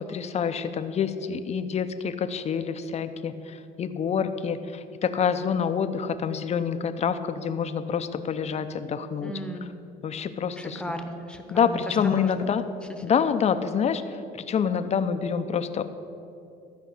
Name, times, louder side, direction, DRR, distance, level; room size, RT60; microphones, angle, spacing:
voice 1, 0.1-9.3 10.0-10.8 11.5-12.6 13.0-15.8, left 7 dB, 40° left, 10 dB, 0.7 m, -27 dB
voice 2, 9.2-9.8 10.6-12.5, equal, 5° left, 5 dB, 1.0 m, -36 dB
12.5 x 5.2 x 8.3 m, 2.7 s
cardioid pair, 110°, 17 cm